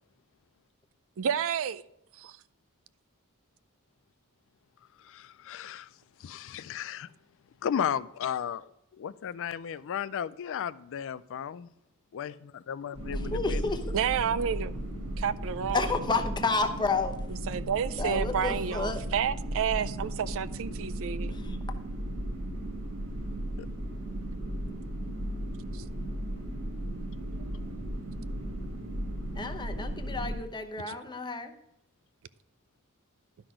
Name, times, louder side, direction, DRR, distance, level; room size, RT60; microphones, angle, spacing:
voice 1, 1.2-1.8 2.2-2.3 13.9-14.8 15.2-16.0 17.5-21.3 25.7-25.8 27.2-27.5 30.8-31.0, right 8 dB, 65° right, 0.4 m, -30 dB
voice 2, 5.0-5.9 6.2-7.1 7.6-8.7 9.0-11.7 12.1-13.7 23.6-23.7, left 8 dB, 60° left, 0.4 m, -34 dB
sound 1, 12.9-30.4, right 1 dB, 80° right, 2.2 m, -35 dB
voice 3, 13.1-13.8 15.7-17.1 18.0-19.0 21.3-21.6 29.4-31.5, left 4 dB, 20° left, 0.8 m, -31 dB
11.5 x 6.0 x 4.9 m
head